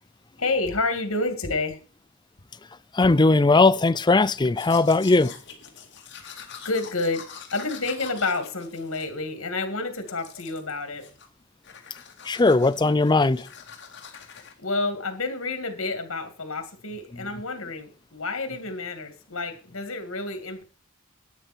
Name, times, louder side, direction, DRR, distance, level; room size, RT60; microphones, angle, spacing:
voice 1, 0.4-1.8 6.2-11.0 14.6-20.6, left 3 dB, 85° left, 2.4 m, -29 dB
voice 2, 2.9-5.3 12.3-13.5, left 3 dB, 20° left, 0.4 m, -19 dB
Domestic sounds home sounds, 4.4-9.7 10.1-10.7 11.0-11.4 11.6-14.5, left 7 dB, 55° left, 2.4 m, -44 dB
12.5 x 9.2 x 4.5 m
head